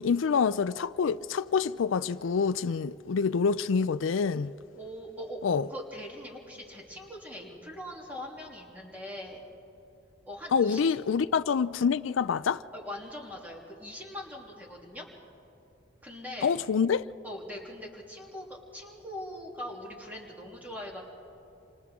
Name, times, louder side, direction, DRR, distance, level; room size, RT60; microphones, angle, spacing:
voice 1, 0.0-4.5 5.4-5.7 10.5-12.6 16.4-17.0, left 6 dB, 85° left, 0.4 m, -26 dB
voice 2, 4.7-5.4 5.7-9.4 10.3-10.9 12.7-15.1 16.0-16.5 17.2-21.0, left 1 dB, 10° right, 3.0 m, -41 dB
28.5 x 25.0 x 3.7 m
head